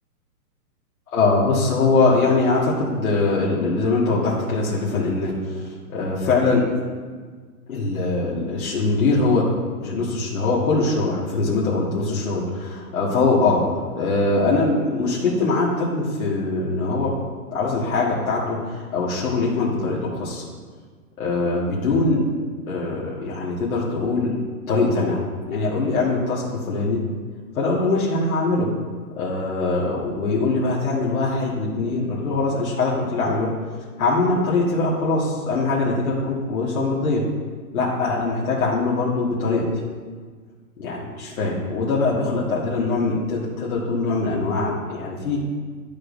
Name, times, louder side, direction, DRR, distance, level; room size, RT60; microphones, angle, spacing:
voice 1, 1.1-6.7 7.7-9.4 9.8-13.6 13.9-17.1 17.5-20.4 21.2-22.2 22.7-24.3 24.7-25.2 25.5-27.0 27.6-28.7 29.2-33.5 34.0-37.2 37.7-39.7 40.8-45.4, left 3 dB, 60° left, -6 dB, 1.9 m, -22 dB
12.5 x 5.2 x 2.7 m, 1.5 s
hypercardioid pair, 160°, 47 cm